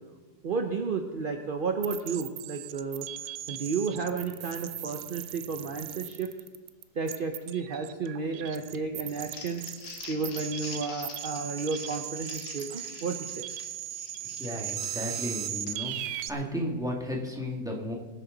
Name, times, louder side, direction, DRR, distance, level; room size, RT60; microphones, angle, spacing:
voice 1, 0.4-3.1 3.5-6.3 7.0-9.6 10.1-13.5, right 4 dB, 45° right, 5 dB, 0.7 m, -32 dB
sound 1, 1.8-16.3, right 12 dB, 85° right, 1.3 m, -38 dB
Crumpling crinkling, 9.1-16.0, left 3 dB, 65° left, 2.3 m, -45 dB
voice 2, 14.4-15.9 16.3-17.9, equal, ahead, -2 dB, 2.2 m, -33 dB
24.5 x 9.0 x 4.0 m, 1.3 s
omnidirectional pair, 1.9 m